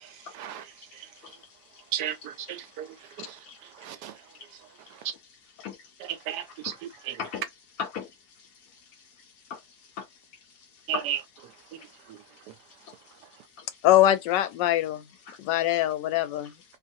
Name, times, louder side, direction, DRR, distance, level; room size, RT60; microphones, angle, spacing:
voice 1, 0.3-0.6 1.9-3.4 3.8-4.1 6.0-7.2 10.9-11.2 11.7-11.8, right 10 dB, 75° right, 1.1 m, -34 dB
voice 2, 6.5-7.4 7.8-8.1 8.4-9.1 9.5-10.1 10.9-11.0 11.8-11.9 12.8-12.9 13.6-13.7 15.3-15.4, left 6 dB, 70° left, 0.9 m, -39 dB
voice 3, 13.8-15.0 15.4-16.5, left 13 dB, 85° left, 1.2 m, -22 dB
2.9 x 2.5 x 2.6 m
omnidirectional pair, 1.8 m